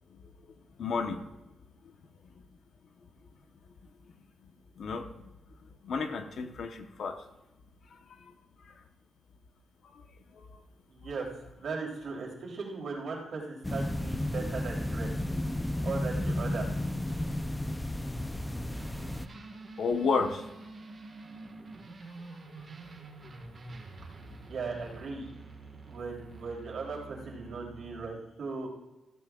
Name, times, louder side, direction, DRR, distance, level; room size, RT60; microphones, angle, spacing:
voice 1, 0.8-1.2 4.8-5.1 5.8-7.2 7.9-8.3 8.6-8.7 9.9-10.0 10.3-10.6 19.8-20.4, left 4 dB, 55° left, 6 dB, 1.1 m, -32 dB
voice 2, 10.9-11.3 11.6-15.1 15.8-16.7 17.1-17.2 24.5-25.3 25.8-28.7, right 4 dB, 55° right, -2 dB, 3.4 m, -38 dB
sound 1, 13.6-19.3, left 1 dB, 5° left, 0.5 m, -33 dB
sound 2, 18.7-28.1, right 3 dB, 35° right, 1.7 m, -47 dB
15.5 x 14.5 x 2.5 m, 0.99 s
wide cardioid pair, 170°, 0 cm